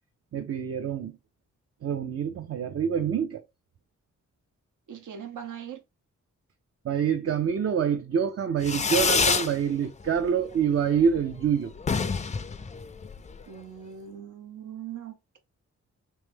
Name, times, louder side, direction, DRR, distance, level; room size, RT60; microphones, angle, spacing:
voice 1, 0.3-1.1 1.8-3.4 6.8-11.7, right 7 dB, 50° right, 0.5 m, -26 dB
voice 2, 4.9-5.8 13.5-15.4, right 9 dB, 80° right, 0.9 m, -40 dB
Fireworks, 8.6-9.5 9.9-10.5 10.7-10.8 11.1-11.2 11.4-11.5 11.8-13.4, left 5 dB, 25° left, 0.4 m, -26 dB
3.3 x 3.1 x 3.4 m
cardioid pair, 75°, 30 cm